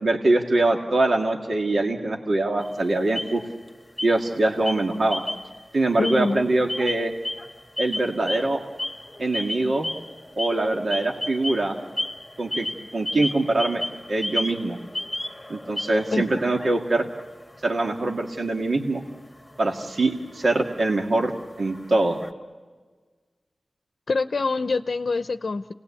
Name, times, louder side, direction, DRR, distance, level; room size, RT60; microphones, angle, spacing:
voice 1, 0.0-3.4 4.0-5.2 5.7-7.1 7.8-8.6 9.2-9.9 10.4-11.8 12.4-12.7 12.9-13.8 14.1-14.8 15.5-17.1 17.6-19.0 19.6-21.3 21.6-22.2, right 2 dB, 65° right, 1 dB, 2.0 m, -23 dB
sound 1, 2.6-3.7 4.0-4.4 4.7-5.6 5.9-22.3, left 1 dB, 10° left, 1.9 m, -34 dB
voice 2, 6.0-6.4 16.1-16.2 24.1-25.7, left 3 dB, 75° left, 9 dB, 0.7 m, -25 dB
29.0 x 19.5 x 8.5 m, 1.4 s
wide cardioid pair, 55°, 0 cm